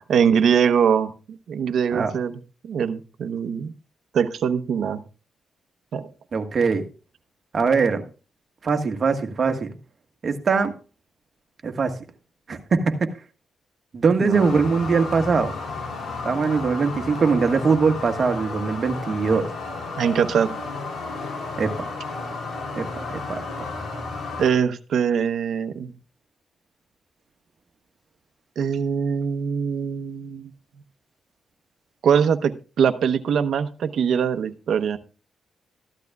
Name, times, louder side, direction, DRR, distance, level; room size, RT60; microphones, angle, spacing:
voice 1, 0.1-1.1 1.5-2.4 2.7-3.7 4.1-5.0 5.9-6.1 14.2-14.4 20.0-20.6 24.4-25.9 28.6-30.5 32.0-35.0, right 7 dB, 70° right, 10 dB, 0.9 m, -22 dB
voice 2, 6.3-6.8 7.5-8.0 8.6-9.8 10.2-10.7 11.6-11.9 12.5-13.0 13.9-15.5 16.2-19.4 21.6-21.7 22.8-23.7, right 5 dB, 45° right, 6 dB, 1.5 m, -22 dB
sound 1, 14.3-24.5, left 3 dB, 60° left, 3.3 m, -33 dB
14.5 x 11.5 x 2.3 m, 0.35 s
cardioid pair, 110°, 0 cm